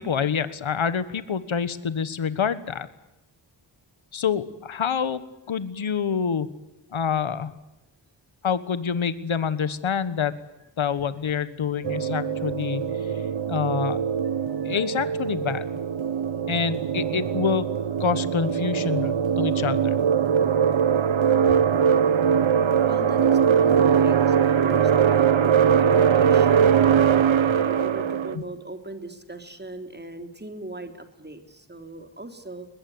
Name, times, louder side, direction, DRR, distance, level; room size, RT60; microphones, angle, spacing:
voice 1, 0.0-2.9 4.1-6.5 6.9-7.5 8.4-10.4 10.8-12.8 13.5-14.0 14.6-15.7 16.5-17.7 18.0-20.0 28.3-28.4, left 7 dB, 90° left, 14 dB, 1.5 m, -26 dB
sound 1, 11.8-28.4, right 7 dB, 80° right, 1.2 m, -21 dB
voice 2, 14.4-14.9 20.5-20.9 22.8-26.8 27.5-32.7, right 2 dB, 20° right, 7 dB, 3.4 m, -39 dB
22.0 x 21.0 x 9.6 m, 0.94 s
wide cardioid pair, 85°, 46 cm